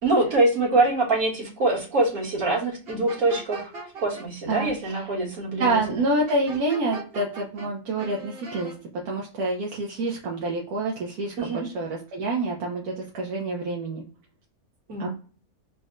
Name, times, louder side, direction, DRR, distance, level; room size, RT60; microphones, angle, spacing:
voice 1, 0.0-3.7 4.0-5.8 11.4-11.7 14.9-15.1, right 2 dB, 65° right, -3 dB, 1.9 m, -24 dB
sound 1, 2.9-4.2 6.3-7.7 8.0-8.7, right 3 dB, 45° right, 1.1 m, -39 dB
voice 2, 4.5-5.1 5.6-8.7 9.0-14.0 15.0-15.1, right 2 dB, 80° right, -1 dB, 1.3 m, -27 dB
4.0 x 2.1 x 3.5 m, 0.39 s
omnidirectional pair, 1.6 m